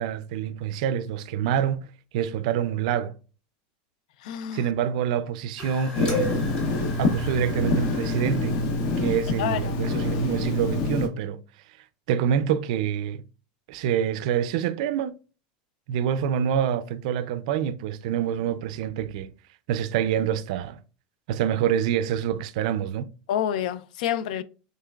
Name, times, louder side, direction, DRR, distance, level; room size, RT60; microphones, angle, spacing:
voice 1, 0.0-1.9 2.1-3.1 4.5-6.3 7.0-8.6 9.0-11.4 12.1-13.2 13.7-15.2 15.9-19.3 19.7-20.8 21.3-23.0, right 9 dB, 60° right, 0.4 m, -26 dB
voice 2, 4.2-4.7 9.4-9.8 23.3-24.4, left 10 dB, 70° left, 0.4 m, -28 dB
sound 1, 5.6-10.7, left 3 dB, 20° left, 1.0 m, -42 dB
Telephone, 5.9-11.1, left 2 dB, 50° left, 0.8 m, -26 dB
5.7 x 3.2 x 2.3 m
supercardioid pair, 180°, 4 cm